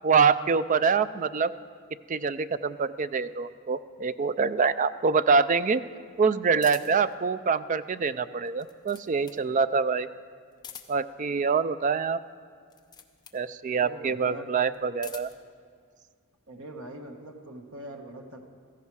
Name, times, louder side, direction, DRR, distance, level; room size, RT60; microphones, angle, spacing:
voice 1, 0.0-1.5 2.1-5.8 6.2-10.1 10.9-12.2 13.3-15.3, right 5 dB, 35° right, 14 dB, 0.3 m, -25 dB
sound 1, 6.6-7.1 8.4-9.5 10.5-11.2 12.6-13.4 14.7-15.5, left 7 dB, 20° left, 0.7 m, -46 dB
voice 2, 13.8-14.5 16.5-18.4, right 1 dB, 75° right, 3 dB, 1.2 m, -42 dB
16.5 x 14.5 x 4.7 m, 2.1 s
head